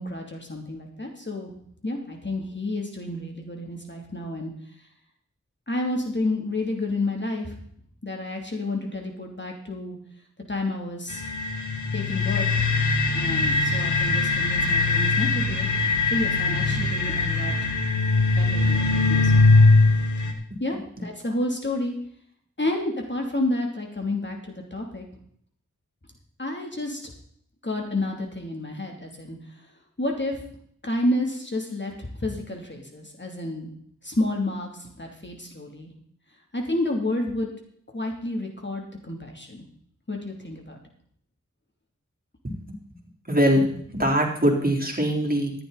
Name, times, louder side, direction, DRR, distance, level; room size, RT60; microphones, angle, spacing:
voice 1, 0.0-1.5 1.8-4.5 5.7-7.6 8.0-10.0 10.5-11.2 11.9-12.6 13.1-15.7 16.1-17.7 18.3-19.4 20.6-21.9 22.6-25.0 26.4-27.1 27.6-29.4 30.0-30.4 30.8-33.7 34.0-35.9 36.5-37.5 37.9-39.6 40.1-40.8, left 1 dB, 40° left, 1 dB, 2.9 m, -30 dB
sound 1, 11.1-20.3, left 3 dB, 85° left, 1.5 m, -21 dB
voice 2, 42.4-42.8 43.3-45.5, equal, 30° right, 0 dB, 3.7 m, -23 dB
14.0 x 11.0 x 4.1 m, 0.64 s
wide cardioid pair, 40°, 29 cm